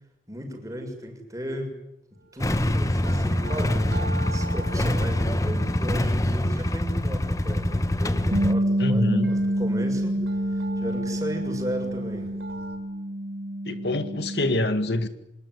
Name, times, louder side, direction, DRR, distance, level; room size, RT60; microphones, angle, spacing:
voice 1, 0.3-1.7 2.3-12.3, equal, 20° right, 3 dB, 6.8 m, -35 dB
Motorcycle / Engine starting / Idling, 2.4-8.5, left 1 dB, 20° left, 0.9 m, -25 dB
sound 1, 2.4-12.8, right 1 dB, 75° right, 6.8 m, -41 dB
Bass guitar, 8.3-14.6, right 1 dB, 60° right, 1.3 m, -27 dB
voice 2, 8.8-9.3 13.6-15.1, left 1 dB, 75° left, 9 dB, 2.0 m, -25 dB
26.0 x 21.0 x 9.9 m, 0.83 s
head